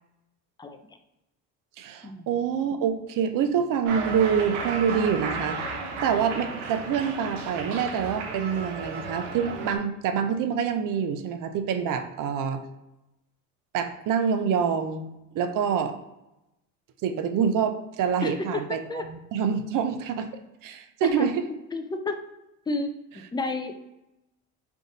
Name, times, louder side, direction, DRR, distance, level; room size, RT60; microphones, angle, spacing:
voice 1, 1.8-5.6 6.0-12.6 13.7-16.0 17.0-20.3 20.6-21.4, right 7 dB, 50° right, 7 dB, 0.6 m, -26 dB
Cheering, 3.8-9.8, right 4 dB, 75° right, 0.9 m, -34 dB
voice 2, 18.2-18.6 18.9-19.0 21.0-21.4 21.7-22.2 22.7-23.7, left 2 dB, 10° left, 6 dB, 0.4 m, -30 dB
3.5 x 2.5 x 3.9 m, 0.91 s
supercardioid pair, 75°, 41 cm